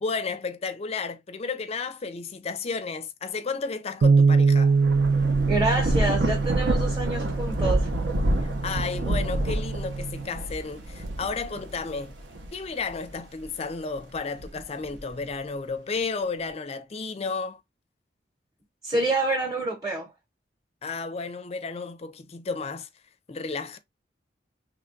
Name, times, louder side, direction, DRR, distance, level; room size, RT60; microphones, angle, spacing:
voice 1, 0.0-4.8 8.4-12.2 12.5-17.6 20.8-22.9 23.3-23.8, left 4 dB, 35° left, 0.4 m, -32 dB
Bass guitar, 4.0-10.3, right 4 dB, 60° right, 0.3 m, -24 dB
Thunder / Rain, 4.5-13.4 14.0-15.3, right 1 dB, 85° right, 0.7 m, -28 dB
voice 2, 5.5-7.9 18.8-20.1, right 2 dB, 20° right, 0.8 m, -27 dB
3.1 x 2.3 x 3.7 m
head